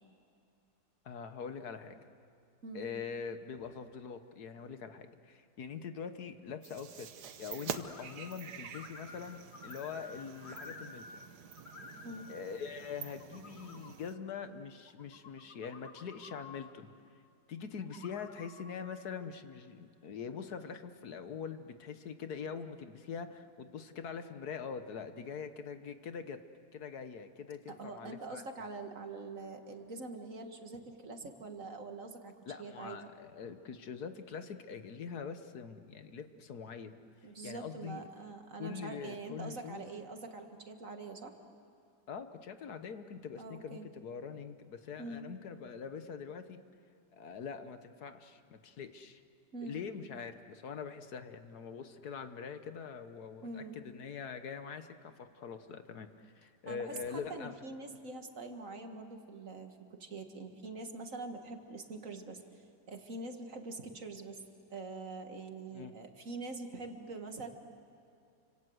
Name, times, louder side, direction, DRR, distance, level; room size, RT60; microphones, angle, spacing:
voice 1, 1.0-2.0 2.7-7.1 7.4-11.0 12.3-16.9 17.5-26.4 26.7-28.4 32.5-37.0 37.4-38.0 38.6-39.9 42.1-46.6 47.1-49.2 49.6-57.5 65.7-65.9, left 6 dB, 65° left, 9 dB, 1.6 m, -43 dB
sound 1, 6.6-14.1, right 7 dB, 70° right, 1.6 m, -47 dB
sound 2, 7.7-8.4 8.6-11.3 11.5-12.4 12.9-13.9 14.9-16.7 17.8-19.0, left 4 dB, 40° left, 1.6 m, -52 dB
voice 2, 27.7-32.3 32.6-33.1 37.2-41.3 43.4-43.9 45.0-45.3 49.5-49.9 53.4-53.8 56.7-64.4 64.7-67.5, right 3 dB, 50° right, 5 dB, 2.1 m, -44 dB
29.5 x 25.5 x 7.9 m, 2.7 s
omnidirectional pair, 1.8 m